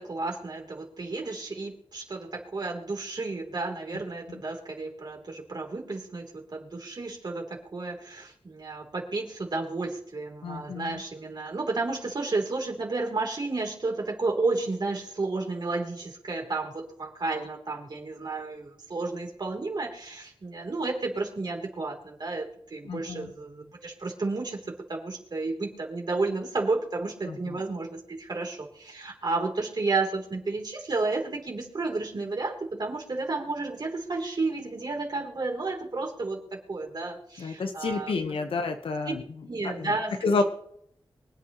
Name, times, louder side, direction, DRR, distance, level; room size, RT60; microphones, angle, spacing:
voice 1, 0.0-38.1 39.5-40.4, right 3 dB, 50° right, 1 dB, 3.3 m, -32 dB
voice 2, 10.4-11.0 22.8-23.3 27.3-27.6 37.4-39.2 39.6-39.9 40.2-40.4, left 3 dB, 90° left, 6 dB, 1.1 m, -30 dB
24.0 x 8.5 x 3.0 m, 0.68 s
wide cardioid pair, 95°, 9 cm